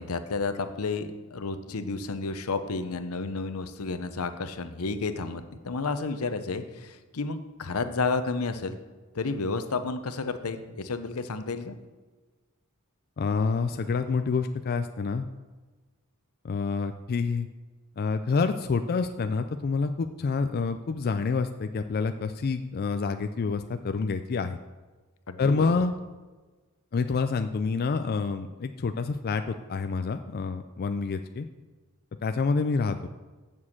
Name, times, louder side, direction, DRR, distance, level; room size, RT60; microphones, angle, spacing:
voice 1, 0.0-8.8 9.1-11.8 25.3-25.8, left 4 dB, 85° left, 9 dB, 0.8 m, -31 dB
voice 2, 13.2-15.3 16.4-17.5 18.0-24.6 25.4-25.9 26.9-31.5 32.2-33.0, left 4 dB, 45° left, 8 dB, 0.4 m, -27 dB
7.4 x 6.3 x 7.3 m, 1.3 s
head